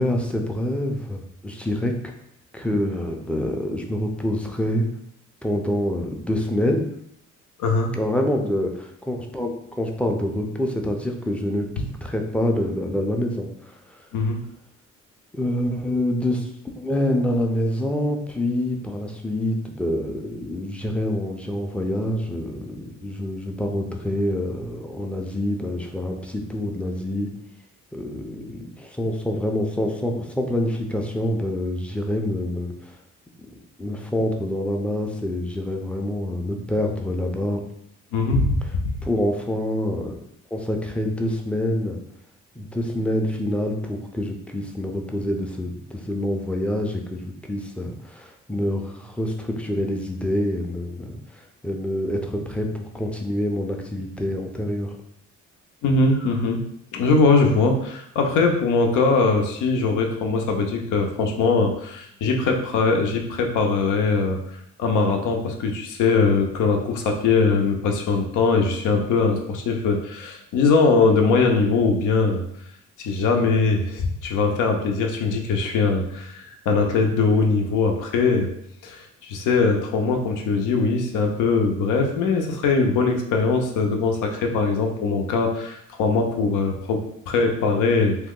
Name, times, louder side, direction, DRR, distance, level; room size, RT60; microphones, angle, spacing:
voice 1, 0.0-1.9 2.5-4.9 5.4-6.8 7.9-14.0 15.3-16.5 16.8-27.3 27.9-33.0 33.5-37.6 39.0-40.1 40.5-42.0 42.6-54.9, left 1 dB, 5° left, 2 dB, 0.4 m, -26 dB
voice 2, 7.6-7.9 14.1-14.4 38.1-38.6 55.8-56.6 56.9-64.4 64.8-72.4 73.0-78.5 78.8-88.2, left 4 dB, 80° left, 3 dB, 0.6 m, -21 dB
2.8 x 2.2 x 3.6 m, 0.73 s
cardioid pair, 90°, 30 cm